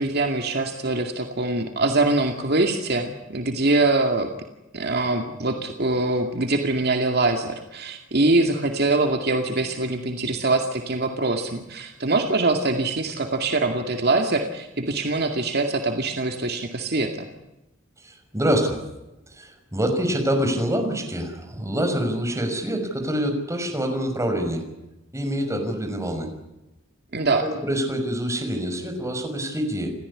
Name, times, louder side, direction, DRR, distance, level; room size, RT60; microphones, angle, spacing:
voice 1, 0.0-4.3 4.7-17.1 27.1-27.4, right 2 dB, 55° right, 4 dB, 2.3 m, -23 dB
voice 2, 18.0-18.8 19.3-24.6 25.1-26.3 27.4-29.9, equal, 15° right, 4 dB, 5.7 m, -26 dB
29.5 x 15.0 x 9.8 m, 0.99 s
head